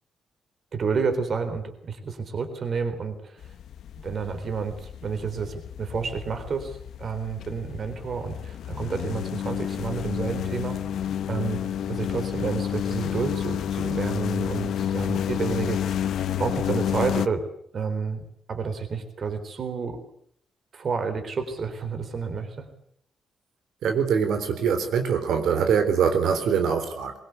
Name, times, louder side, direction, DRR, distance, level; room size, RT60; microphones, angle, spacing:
voice 1, 0.7-3.4 4.0-10.8 11.3-16.1 16.4-17.5 17.7-20.0 20.7-22.7, right 5 dB, 40° right, 9 dB, 3.9 m, -30 dB
sound 1, 3.4-17.3, left 9 dB, 70° left, 0.9 m, -30 dB
voice 2, 23.8-27.1, right 7 dB, 85° right, 7 dB, 3.9 m, -23 dB
23.0 x 23.0 x 8.2 m, 0.66 s
wide cardioid pair, 180°, 0 cm